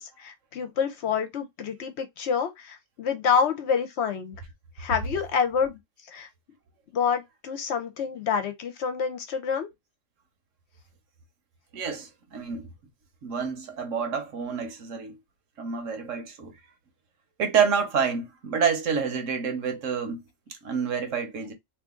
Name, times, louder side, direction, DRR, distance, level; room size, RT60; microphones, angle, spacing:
voice 1, 0.0-4.3 4.8-5.8 6.1-6.3 6.9-9.7, left 6 dB, 65° left, 0.9 m, -27 dB
voice 2, 11.7-12.7 13.2-15.2 15.6-16.5 17.4-20.2 20.6-21.5, right 6 dB, 75° right, 1.3 m, -28 dB
2.9 x 2.5 x 3.6 m
omnidirectional pair, 1.3 m